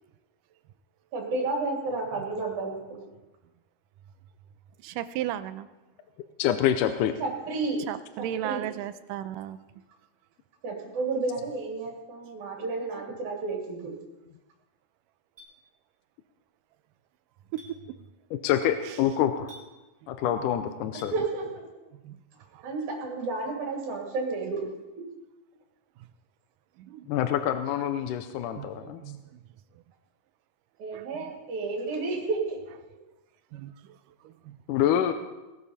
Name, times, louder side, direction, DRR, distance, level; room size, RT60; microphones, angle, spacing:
voice 1, 1.1-3.1 7.2-7.9 8.2-8.7 10.6-14.0 21.1-21.7 22.6-24.7 25.0-25.1 30.8-32.6 32.9-33.0, right 3 dB, 60° right, 0 dB, 3.9 m, -31 dB
voice 2, 4.8-5.7 7.9-9.6 13.9-14.0 17.5-17.8 18.8-19.0 20.2-20.5 22.0-22.2 22.5-22.7 26.8-27.1 28.6-29.4 30.9-31.3 33.5-34.0 34.2-34.6, right 12 dB, 80° right, 12 dB, 2.2 m, -36 dB
voice 3, 6.4-7.1 18.4-19.5 20.1-21.1 27.1-29.0 34.7-35.1, left 10 dB, 80° left, 8 dB, 2.1 m, -26 dB
Chink clink, 15.4-15.5 17.6-17.7 19.5-19.7 21.0-21.1, right 2 dB, 5° right, 4.0 m, -48 dB
19.5 x 12.0 x 4.2 m, 1.1 s
omnidirectional pair, 3.9 m